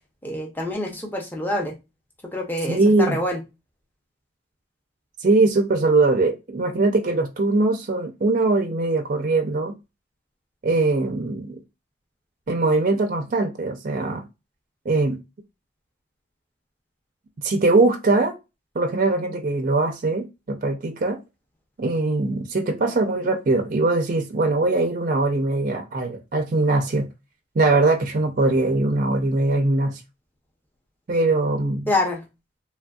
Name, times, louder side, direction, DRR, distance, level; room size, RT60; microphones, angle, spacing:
voice 1, 0.2-1.8 2.3-3.4 31.9-32.2, left 1 dB, 10° left, 0.6 m, -26 dB
voice 2, 2.7-3.2 5.2-9.8 10.6-11.6 12.5-14.2 14.9-15.2 17.4-18.3 18.8-21.2 21.8-27.1 27.6-30.0 31.1-31.9, right 2 dB, 40° right, 0.4 m, -21 dB
3.2 x 2.5 x 2.3 m
head